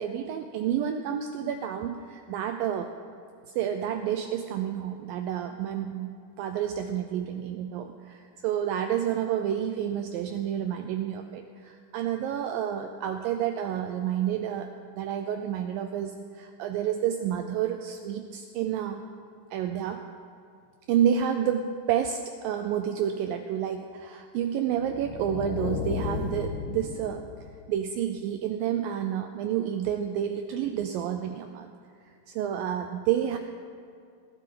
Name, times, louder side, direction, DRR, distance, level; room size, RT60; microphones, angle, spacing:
voice 1, 0.0-2.9 3.5-19.1 19.5-20.1 20.9-27.2 27.7-31.7 32.3-33.4, right 9 dB, 80° right, 6 dB, 2.1 m, -29 dB
sound 1, 24.8-27.8, left 6 dB, 75° left, 1.8 m, -34 dB
20.0 x 12.0 x 3.8 m, 2.3 s
omnidirectional pair, 4.5 m